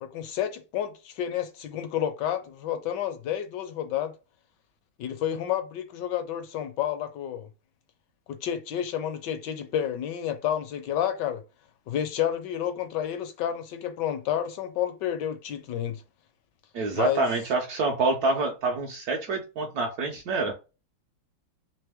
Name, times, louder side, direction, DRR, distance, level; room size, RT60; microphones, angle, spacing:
voice 1, 0.0-4.1 5.0-7.5 8.3-11.4 11.9-16.0 16.9-17.2, left 10 dB, 75° left, 1.1 m, -30 dB
voice 2, 16.7-20.5, right 3 dB, 70° right, 0.9 m, -27 dB
3.4 x 3.0 x 3.4 m
omnidirectional pair, 2.2 m